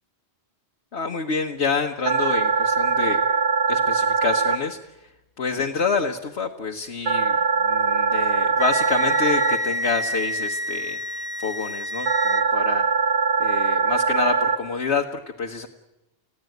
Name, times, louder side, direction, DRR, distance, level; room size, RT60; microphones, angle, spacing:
voice 1, 0.9-3.2 3.7-4.8 5.4-7.4 7.6-12.9 13.4-15.7, left 5 dB, 75° left, 2 dB, 1.6 m, -27 dB
sound 1, 2.1-4.6 7.1-9.6 12.1-14.6, right 5 dB, 85° right, 1.7 m, -21 dB
Wind instrument woodwind instrument, 8.6-12.5, equal, 5° right, 1.0 m, -29 dB
30.0 x 16.0 x 9.2 m, 0.95 s
omnidirectional pair, 1.1 m